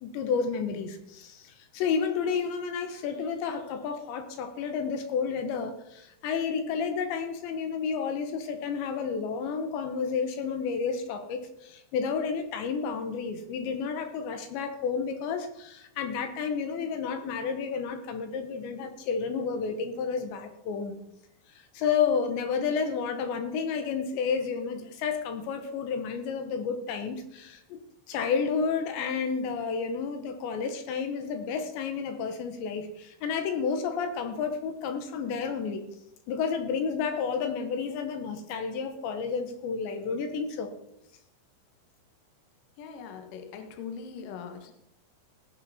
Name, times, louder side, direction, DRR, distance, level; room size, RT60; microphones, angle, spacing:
voice 1, 0.0-21.0 21.5-27.8 28.1-35.9 36.3-40.7, left 6 dB, 80° left, 7 dB, 3.4 m, -31 dB
voice 2, 42.8-44.7, left 6 dB, 60° left, 5 dB, 2.6 m, -41 dB
17.0 x 10.5 x 4.3 m, 0.81 s
omnidirectional pair, 5.2 m